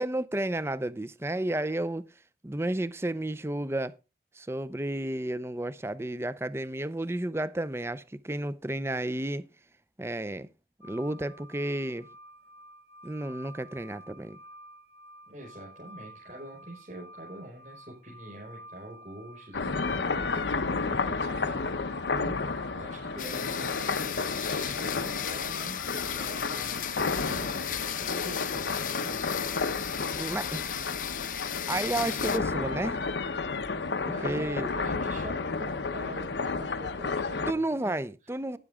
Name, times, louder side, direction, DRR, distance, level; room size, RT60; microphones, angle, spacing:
voice 1, 0.0-2.1 2.4-3.9 4.3-9.5 10.0-10.5 10.8-12.1 13.0-14.4 30.1-30.8 31.7-33.0 34.2-34.7 37.5-38.6, right 1 dB, 15° right, 0.5 m, -32 dB
sound 1, 10.8-30.2, right 1 dB, 60° right, 1.7 m, -51 dB
voice 2, 15.3-29.2 33.9-37.9, right 1 dB, 45° right, 5.5 m, -45 dB
sound 2, 19.5-37.5, left 4 dB, 85° left, 0.9 m, -32 dB
sound 3, 23.2-32.4, left 11 dB, 50° left, 0.6 m, -36 dB
12.0 x 9.9 x 3.6 m
head